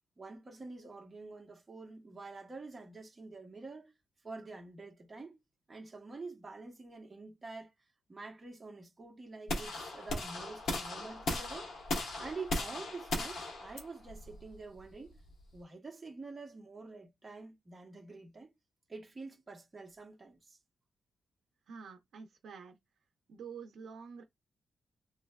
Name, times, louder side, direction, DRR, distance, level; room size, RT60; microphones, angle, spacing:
voice 1, 0.2-3.9 4.2-5.4 5.7-7.7 8.1-11.7 12.2-15.2 15.5-18.5 18.9-20.6, right 3 dB, 20° right, 1.1 m, -47 dB
sound 1, 9.5-15.6, left 2 dB, 70° left, 1.1 m, -38 dB
voice 2, 21.7-22.8 23.3-24.2, right 6 dB, 80° right, 0.6 m, -48 dB
3.1 x 3.1 x 2.3 m
wide cardioid pair, 170°, 0 cm